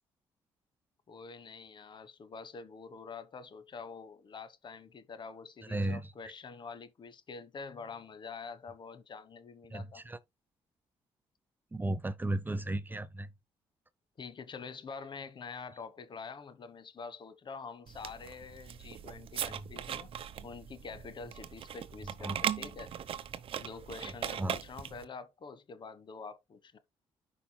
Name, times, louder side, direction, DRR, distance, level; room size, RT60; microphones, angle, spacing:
voice 1, 1.1-10.0 14.2-20.1 20.4-22.9 23.6-26.8, left 5 dB, 45° left, 1.2 m, -46 dB
voice 2, 5.7-6.0 9.7-10.2 11.7-13.3 22.2-22.4 24.4-24.6, right 1 dB, 20° right, 0.7 m, -34 dB
sound 1, 17.9-25.0, right 9 dB, 60° right, 0.8 m, -39 dB
13.0 x 5.3 x 2.2 m
supercardioid pair, 70°, 11 cm